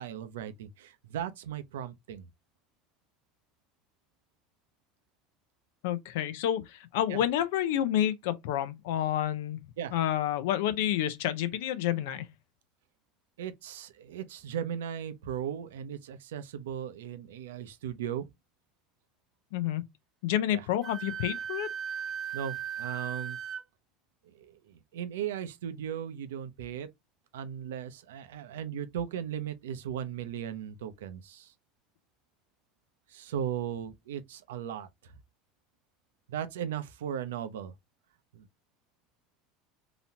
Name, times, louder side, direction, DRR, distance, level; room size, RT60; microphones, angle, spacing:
voice 1, 0.0-2.3 7.1-7.2 9.8-9.9 13.4-18.3 20.5-20.6 22.3-23.4 24.3-26.9 27.3-31.5 33.1-35.1 36.3-37.7 38.3-38.5, right 9 dB, 80° right, 0.6 m, -37 dB
voice 2, 5.8-9.6 9.9-12.3 19.5-19.8 20.2-21.7, left 11 dB, 70° left, 0.6 m, -29 dB
Wind instrument woodwind instrument, 20.8-23.6, right 8 dB, 40° right, 0.8 m, -37 dB
4.0 x 2.9 x 2.8 m
hypercardioid pair, 80°, 0 cm